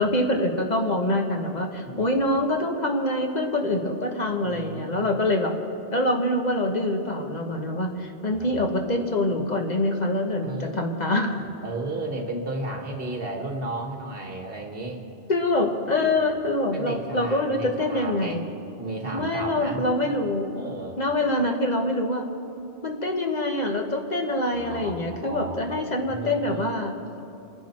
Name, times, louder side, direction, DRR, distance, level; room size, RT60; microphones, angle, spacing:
voice 1, 0.0-5.5 5.9-11.3 15.3-18.4 19.1-20.5 21.0-22.2 22.8-26.9, left 1 dB, 40° left, 2 dB, 1.4 m, -25 dB
voice 2, 1.8-2.2 4.4-5.2 8.3-8.6 10.4-15.0 15.8-16.1 16.7-18.4 18.8-20.2 20.5-21.0 24.5-26.9, right 2 dB, 60° right, 2 dB, 2.0 m, -34 dB
28.0 x 10.5 x 4.4 m, 2.7 s
omnidirectional pair, 1.1 m